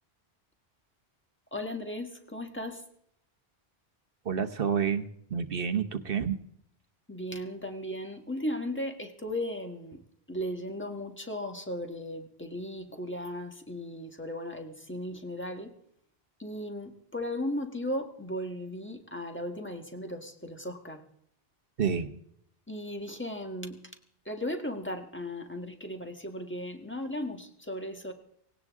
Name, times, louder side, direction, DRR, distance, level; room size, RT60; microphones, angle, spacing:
voice 1, 1.5-2.8 7.1-10.0 10.3-15.7 16.4-21.0 22.7-23.8 24.2-28.1, left 1 dB, 10° left, 4 dB, 1.6 m, -36 dB
voice 2, 4.2-6.4 21.8-22.2, right 7 dB, 65° right, 9 dB, 1.2 m, -29 dB
18.5 x 17.5 x 3.6 m, 0.71 s
omnidirectional pair, 1.0 m